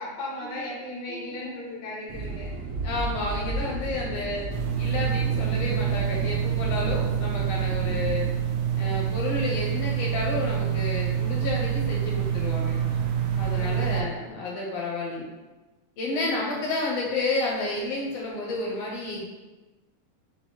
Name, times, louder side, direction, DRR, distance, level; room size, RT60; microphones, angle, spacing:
voice 1, 0.0-2.6 13.6-14.7 16.1-16.5, left 1 dB, 90° left, -5 dB, 0.5 m, -37 dB
sound 1, 2.1-8.1, right 2 dB, 70° right, 1.5 m, -34 dB
voice 2, 2.8-8.3 8.7-12.8 13.4-15.2 16.0-19.3, left 2 dB, 75° left, -2 dB, 1.5 m, -31 dB
sound 2, 4.5-14.0, right 9 dB, 85° right, 1.4 m, -26 dB
6.0 x 2.0 x 4.3 m, 1.1 s
omnidirectional pair, 3.4 m